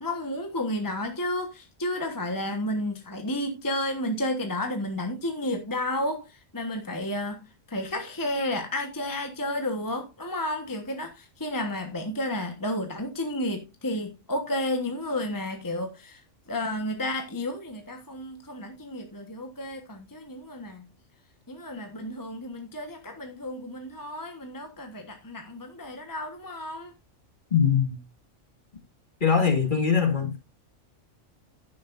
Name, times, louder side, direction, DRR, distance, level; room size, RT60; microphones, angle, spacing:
voice 1, 0.0-16.2 16.5-20.8 21.5-26.9, left 1 dB, 15° left, 1.3 m, -32 dB
voice 2, 27.5-28.0 29.2-30.4, left 6 dB, 40° left, 2.2 m, -22 dB
11.0 x 10.5 x 2.6 m
omnidirectional pair, 1.4 m